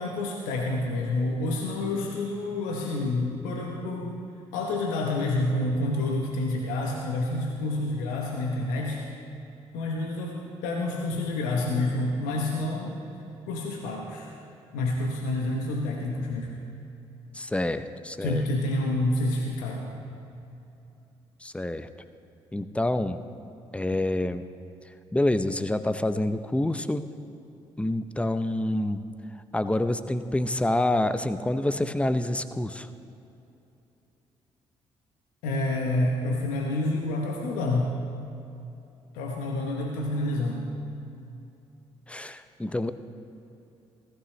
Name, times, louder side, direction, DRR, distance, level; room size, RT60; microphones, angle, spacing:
voice 1, 0.0-4.2 4.5-9.0 9.7-10.4 10.6-13.0 13.5-14.3 14.7-16.5 18.2-20.1 35.4-38.0 39.1-40.7, left 2 dB, 85° left, 0 dB, 1.0 m, -28 dB
voice 2, 17.3-18.4 21.4-21.9 22.5-23.2 23.7-24.4 25.1-27.0 27.8-29.0 29.5-32.9 42.1-42.9, left 1 dB, 10° left, 12 dB, 0.7 m, -27 dB
16.0 x 14.5 x 3.2 m, 2.8 s
hypercardioid pair, 50°, 13 cm